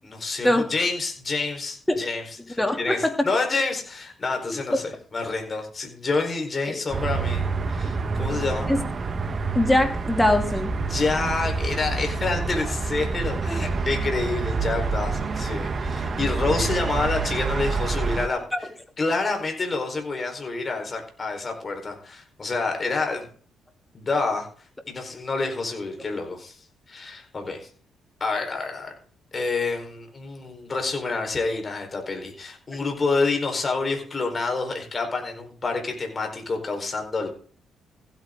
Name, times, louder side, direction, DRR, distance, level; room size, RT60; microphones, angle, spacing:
voice 1, 0.0-8.7 10.8-18.4 19.0-23.3 23.9-24.5 24.9-26.6 26.9-27.7 28.2-28.9 29.3-37.3, left 3 dB, 35° left, 3 dB, 4.4 m, -28 dB
voice 2, 2.6-3.3 4.7-4.8 6.7-6.8 8.7-8.8 9.5-10.7 13.5-13.7 18.5-18.6, left 1 dB, 10° left, 5 dB, 2.7 m, -22 dB
sound 1, 6.9-18.3, right 4 dB, 40° right, 1.2 m, -27 dB
15.5 x 9.1 x 3.8 m, 0.44 s
cardioid pair, 90°, 0 cm